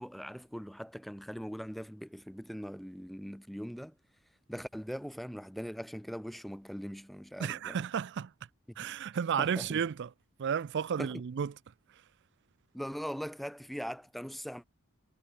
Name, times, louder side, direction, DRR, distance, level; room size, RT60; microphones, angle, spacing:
voice 1, 0.0-4.0 4.5-7.8 8.8-8.9 9.4-9.8 11.0-11.1 12.7-14.6, equal, ahead, 0.7 m, -41 dB
voice 2, 7.4-8.3 8.8-10.1 10.4-11.5, right 7 dB, 55° right, 0.4 m, -32 dB
head